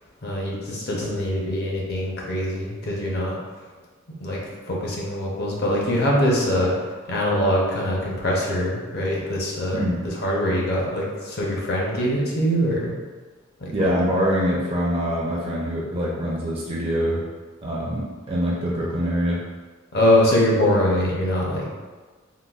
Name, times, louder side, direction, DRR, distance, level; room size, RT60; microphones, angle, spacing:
voice 1, 0.2-3.4 4.2-6.8 7.1-12.9 13.6-13.9 19.9-21.7, equal, 50° left, -3 dB, 0.7 m, -23 dB
voice 2, 13.7-17.2 17.6-19.4, equal, 25° right, -4 dB, 0.4 m, -24 dB
3.8 x 2.2 x 2.3 m, 1.4 s
head